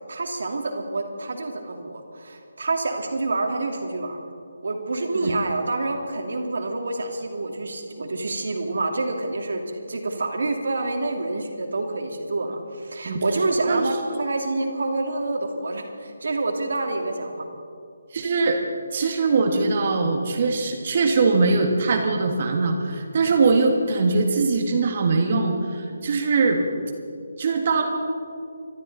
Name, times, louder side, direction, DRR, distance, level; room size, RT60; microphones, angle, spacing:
voice 1, 0.1-4.2 4.6-17.5, right 2 dB, 70° right, 3 dB, 2.3 m, -27 dB
voice 2, 18.1-18.6 18.9-26.7 27.4-27.8, right 3 dB, 45° right, 3 dB, 1.7 m, -21 dB
25.0 x 12.5 x 4.1 m, 2.4 s
figure-of-eight pair, 160°, 0 cm